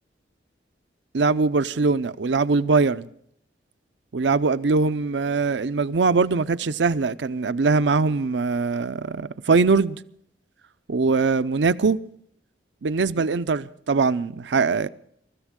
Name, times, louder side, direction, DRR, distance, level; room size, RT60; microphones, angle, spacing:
voice 1, 1.1-3.1 4.1-10.0 10.9-12.0 12.8-14.9, right 4 dB, 80° right, 0.6 m, -22 dB
23.5 x 14.0 x 3.7 m
head